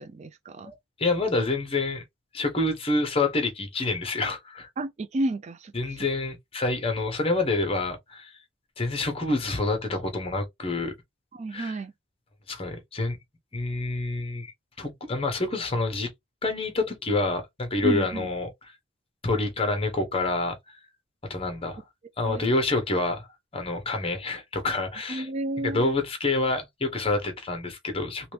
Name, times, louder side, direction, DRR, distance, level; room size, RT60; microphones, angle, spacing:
voice 1, 0.0-0.7 4.8-6.0 11.3-11.9 17.8-18.3 22.2-22.4 25.1-25.9, right 1 dB, 35° right, 0.3 m, -31 dB
voice 2, 0.6-2.0 2.3-4.7 5.7-8.4 8.8-10.9 11.5-11.8 12.5-13.2 13.5-16.1 16.4-18.8 19.2-20.8 21.3-21.8 22.2-23.3 23.5-25.3 25.6-28.3, left 2 dB, 30° left, 1.0 m, -27 dB
3.1 x 2.9 x 3.2 m
head